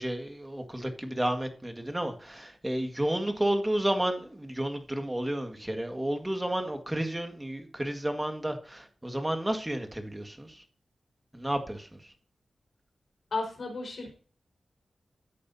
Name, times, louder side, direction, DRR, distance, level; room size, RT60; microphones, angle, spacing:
voice 1, 0.0-10.6 11.3-11.9, right 1 dB, 15° right, 1.8 m, -31 dB
voice 2, 13.3-14.1, left 3 dB, 75° left, 5.0 m, -33 dB
14.0 x 8.5 x 2.8 m
cardioid pair, 60°, 0 cm